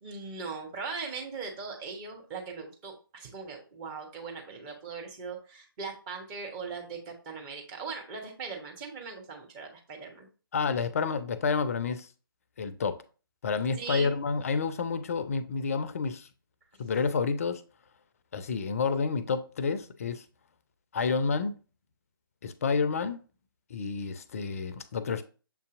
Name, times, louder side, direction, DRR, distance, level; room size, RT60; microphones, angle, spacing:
voice 1, 0.0-10.3 13.8-14.1, right 5 dB, 20° right, 0.9 m, -39 dB
voice 2, 10.5-12.1 12.6-13.0 13.4-16.3 16.8-17.6 18.3-20.2 20.9-21.6 22.4-23.2 23.7-25.2, left 5 dB, 40° left, 0.4 m, -29 dB
6.9 x 2.7 x 2.5 m
figure-of-eight pair, 140°, 12 cm